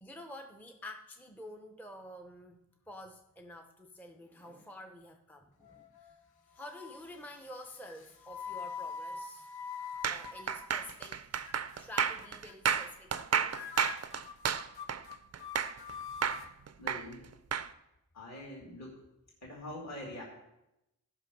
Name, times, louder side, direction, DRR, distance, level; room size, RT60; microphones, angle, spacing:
voice 1, 0.0-6.2 6.5-11.3 11.7-13.6, left 1 dB, 5° left, 4 dB, 0.7 m, -49 dB
sound 1, 5.6-6.2 6.6-7.1 7.9-11.2 11.5-11.8 12.2-12.5 12.8-13.2 13.5-16.5, left 6 dB, 85° left, 0.8 m, -44 dB
sound 2, 10.0-15.9 16.2-17.7, right 7 dB, 45° right, 0.5 m, -32 dB
voice 2, 16.8-17.2 18.1-19.0 19.4-20.2, left 1 dB, 45° left, -3 dB, 2.5 m, -44 dB
16.5 x 6.0 x 5.2 m, 0.89 s
wide cardioid pair, 145°, 36 cm